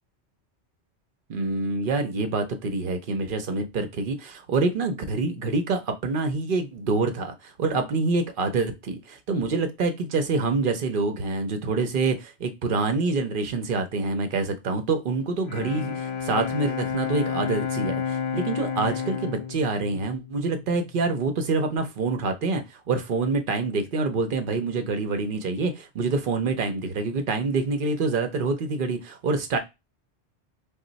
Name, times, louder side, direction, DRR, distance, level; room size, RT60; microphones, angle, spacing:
voice 1, 1.3-29.6, right 3 dB, 55° right, 0.8 m, -26 dB
Bowed string instrument, 15.2-21.0, left 7 dB, 75° left, 0.8 m, -31 dB
3.0 x 2.2 x 3.8 m
omnidirectional pair, 1.1 m